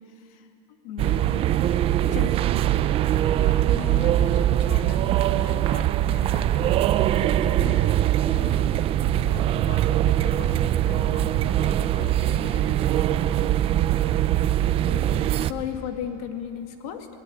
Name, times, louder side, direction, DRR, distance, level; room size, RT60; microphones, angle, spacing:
voice 1, 0.1-1.6 2.1-2.7 14.9-17.1, left 9 dB, 70° left, 5 dB, 2.3 m, -35 dB
sound 1, 1.0-15.5, right 12 dB, 30° right, 0.5 m, -22 dB
voice 2, 3.3-8.8 9.1-13.6, left 11 dB, 45° left, 12 dB, 1.0 m, -41 dB
20.0 x 19.0 x 10.0 m, 2.7 s
cardioid pair, 160°, 19 cm